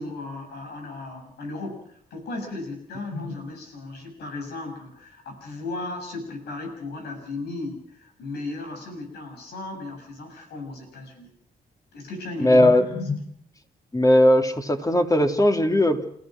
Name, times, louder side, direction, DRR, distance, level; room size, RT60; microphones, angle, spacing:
voice 1, 0.0-11.3 11.9-13.2, left 2 dB, 85° left, 4 dB, 7.2 m, -35 dB
voice 2, 12.4-12.8 13.9-16.0, left 1 dB, 20° left, 5 dB, 3.4 m, -18 dB
30.0 x 15.5 x 6.2 m, 0.66 s
supercardioid pair, 55°, 17 cm